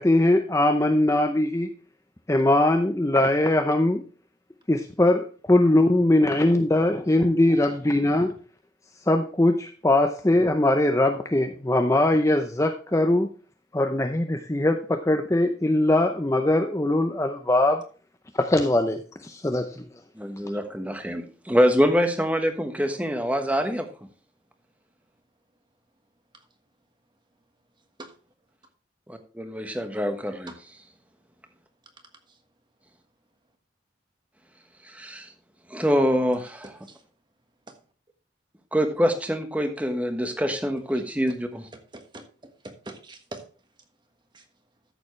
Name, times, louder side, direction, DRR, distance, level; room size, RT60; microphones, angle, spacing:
voice 1, 0.0-1.7 2.3-4.0 4.7-8.3 9.1-13.3 13.7-17.8 18.4-19.9, left 1 dB, 15° left, 6 dB, 0.6 m, -21 dB
voice 2, 20.2-23.9 29.1-30.5 34.9-35.3 35.7-36.7 38.7-41.6, equal, 10° right, 6 dB, 1.2 m, -25 dB
voice 3, 36.6-37.0 41.3-41.4 41.7-42.2 42.6-43.4 44.3-44.4, right 2 dB, 25° right, 6 dB, 1.4 m, -42 dB
13.5 x 7.1 x 3.2 m, 0.36 s
head